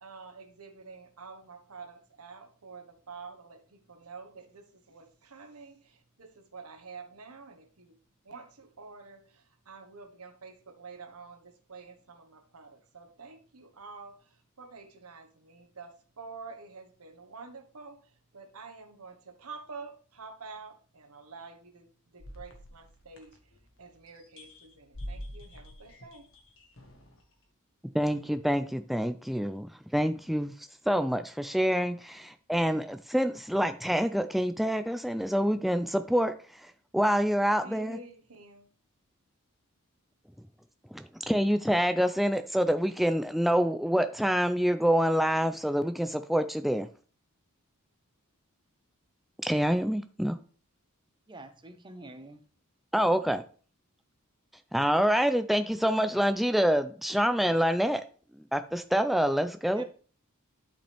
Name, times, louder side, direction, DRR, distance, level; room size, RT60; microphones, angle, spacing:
voice 1, 0.0-7.9 8.2-21.9 22.1-23.4 23.8-26.3 37.6-38.7, right 4 dB, 85° right, 6 dB, 1.4 m, -48 dB
sound 1, 22.2-23.8 24.1-27.2, equal, 60° left, 1.6 m, -45 dB
voice 2, 27.9-30.5 30.9-38.0 40.9-46.9 49.4-50.4 52.9-53.4 54.7-58.0 58.5-59.8, equal, ahead, 8 dB, 0.4 m, -26 dB
voice 3, 51.3-52.4 59.8-59.9, right 2 dB, 20° right, 7 dB, 0.8 m, -46 dB
11.5 x 5.2 x 3.4 m, 0.41 s
head